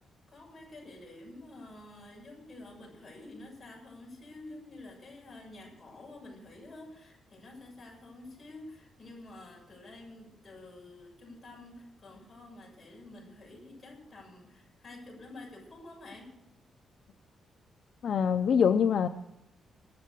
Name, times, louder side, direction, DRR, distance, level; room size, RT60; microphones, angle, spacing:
voice 1, 0.3-16.3, left 2 dB, 25° left, -3 dB, 7.7 m, -49 dB
voice 2, 18.0-19.1, left 7 dB, 55° left, 8 dB, 0.6 m, -24 dB
22.5 x 7.4 x 6.8 m, 0.87 s
wide cardioid pair, 165°, 0 cm